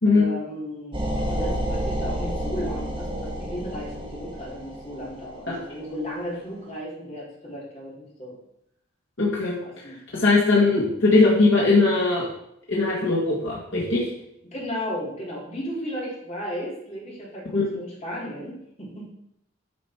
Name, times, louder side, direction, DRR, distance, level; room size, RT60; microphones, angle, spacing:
voice 1, 0.1-8.3 9.6-9.9 14.5-19.1, equal, 35° left, -5 dB, 3.6 m, -34 dB
sound 1, 0.9-5.7, right 1 dB, 25° right, 1.8 m, -30 dB
voice 2, 9.2-9.6 10.1-12.2 12.7-14.0 17.5-17.7, left 3 dB, 65° left, -5 dB, 2.1 m, -20 dB
9.6 x 5.3 x 4.6 m, 0.77 s
head